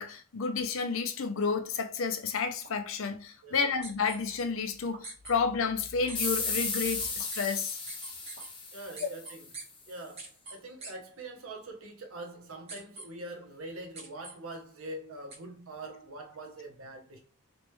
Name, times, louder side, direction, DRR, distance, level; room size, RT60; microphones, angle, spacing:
voice 1, 0.0-7.8 9.0-9.1, left 5 dB, 60° left, 0.5 m, -31 dB
sound 1, 1.5-1.6 2.6-2.7 3.8-3.9 4.9-5.0 6.1-6.2 7.2-7.3 8.4-8.5, right 5 dB, 50° right, 1.2 m, -51 dB
voice 2, 3.4-3.7 8.7-9.5 9.9-17.2, right 2 dB, 70° right, 0.9 m, -44 dB
sound 2, 3.8-4.2 5.0-5.3 6.1-6.3 6.8-7.4 7.9-8.5 9.0-9.6 10.2-10.5 10.8-10.9 12.7-13.0 14.0-14.3 15.3-15.4, right 3 dB, 30° right, 1.4 m, -42 dB
sound 3, 6.1-9.5, left 3 dB, 20° left, 0.6 m, -34 dB
3.3 x 3.0 x 3.1 m
head